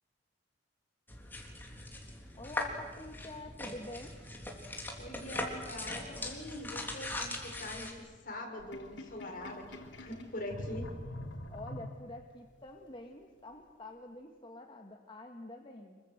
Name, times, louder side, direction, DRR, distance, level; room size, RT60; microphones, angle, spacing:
sound 1, 1.1-7.9, left 1 dB, 10° left, 3.7 m, -40 dB
voice 1, 2.3-4.2 11.5-16.0, left 2 dB, 25° left, 2 dB, 1.8 m, -47 dB
voice 2, 5.0-10.9, left 1 dB, 50° left, 1 dB, 5.9 m, -43 dB
Sink (filling or washing), 8.6-12.4, left 1 dB, 85° left, 3.5 m, -44 dB
26.5 x 23.5 x 8.1 m, 1.5 s
head